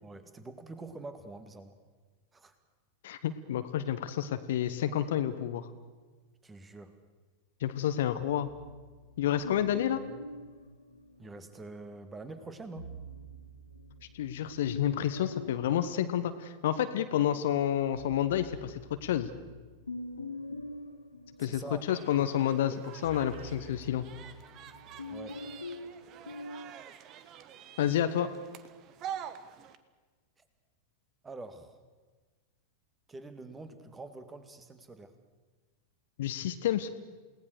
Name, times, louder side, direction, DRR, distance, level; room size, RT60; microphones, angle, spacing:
voice 1, 0.0-1.8 2.3-2.5 6.4-7.0 11.2-12.9 21.4-21.8 22.2-22.8 25.1-25.4 31.2-31.8 33.1-35.1, right 3 dB, 15° right, 10 dB, 2.3 m, -45 dB
voice 2, 3.0-5.7 7.6-8.5 9.2-10.0 14.1-19.3 21.4-21.6 21.9-22.7 23.0-24.1 27.8-28.3 36.2-36.9, left 11 dB, 55° left, 10 dB, 1.2 m, -29 dB
sound 1, 8.1-11.6 12.6-17.0 17.4-26.7, left 2 dB, 80° left, 1.9 m, -45 dB
sound 2, 21.9-29.8, right 9 dB, 35° right, 1.4 m, -47 dB
29.0 x 18.5 x 6.7 m, 1.3 s
figure-of-eight pair, 90°, 0 cm